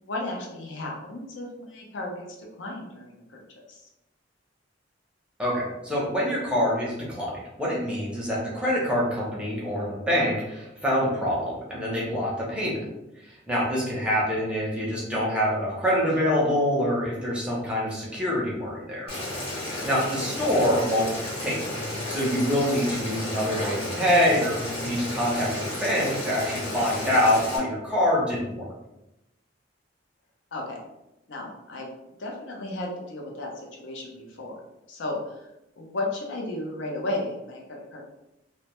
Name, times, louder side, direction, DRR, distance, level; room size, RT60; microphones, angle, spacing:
voice 1, 0.1-3.9 20.4-20.7 30.5-30.8 31.3-31.9 32.2-34.6 34.9-35.5 35.8-38.0, left 2 dB, 75° left, 0 dB, 0.5 m, -34 dB
voice 2, 5.4-12.8 13.5-19.1 19.8-21.0 21.4-21.6 21.9-28.6, equal, 5° right, -6 dB, 0.6 m, -25 dB
Boiling, 19.1-27.6, left 1 dB, 30° left, 0.8 m, -32 dB
2.1 x 2.0 x 2.9 m, 0.92 s
head